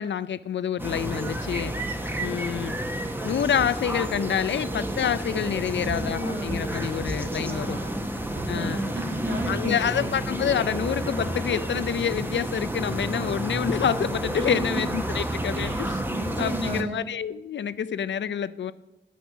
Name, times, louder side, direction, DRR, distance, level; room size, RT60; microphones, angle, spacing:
voice 1, 0.0-1.7 2.2-2.8 3.2-7.8 8.5-8.8 9.5-16.0 16.4-18.7, left 8 dB, 80° left, 16 dB, 0.4 m, -27 dB
sound 1, 0.8-16.8, right 1 dB, 10° right, 1.0 m, -30 dB
voice 2, 5.7-7.0 7.4-10.1 10.7-10.8 14.4-14.9 15.5-17.0, right 1 dB, 80° right, 2 dB, 2.0 m, -34 dB
9.3 x 6.2 x 7.1 m, 0.97 s
wide cardioid pair, 85°, 19 cm